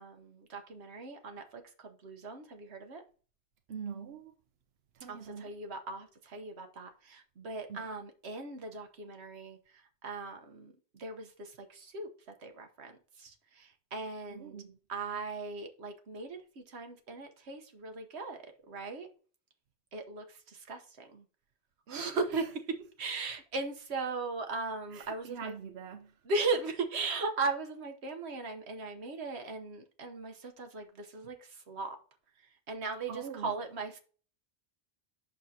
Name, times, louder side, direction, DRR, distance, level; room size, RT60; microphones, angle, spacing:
voice 1, 0.0-3.0 5.1-12.1 12.4-14.6 14.9-19.1 19.9-21.2 21.9-22.5 23.0-25.5 26.3-32.0 32.7-34.0, right 3 dB, 90° right, 1.3 m, -38 dB
voice 2, 3.7-4.3 4.9-5.5 7.7-7.9 14.3-14.8 21.9-22.5 24.9-26.1 33.1-33.6, right 7 dB, 75° right, 1.0 m, -44 dB
8.2 x 6.3 x 2.8 m
omnidirectional pair, 1.1 m